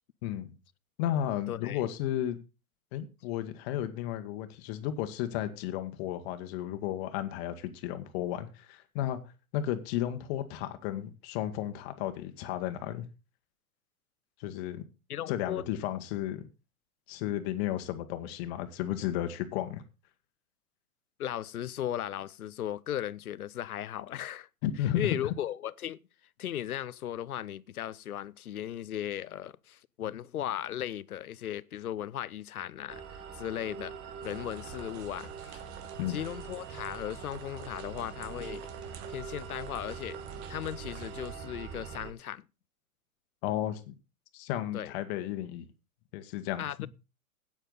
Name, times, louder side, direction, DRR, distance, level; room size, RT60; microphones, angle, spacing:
voice 1, 0.2-0.6 1.0-2.4 2.9-9.2 9.5-13.1 14.4-14.8 15.3-16.5 17.1-19.8 24.6-25.1 36.0-36.2 43.4-43.9 44.3-45.6 46.1-46.6, left 12 dB, 45° left, 1.6 m, -33 dB
voice 2, 1.5-1.8 15.1-15.6 21.2-24.5 24.8-26.0 26.4-33.9 34.2-35.6 36.1-38.7 39.1-40.2 40.5-42.5 44.7-44.9 46.6-46.9, left 11 dB, 80° left, 0.7 m, -37 dB
sound 1, 32.9-42.1, right 6 dB, 30° right, 1.7 m, -43 dB
sound 2, 34.2-41.3, right 9 dB, 50° right, 1.7 m, -50 dB
13.0 x 9.1 x 4.0 m
hypercardioid pair, 110°, 43 cm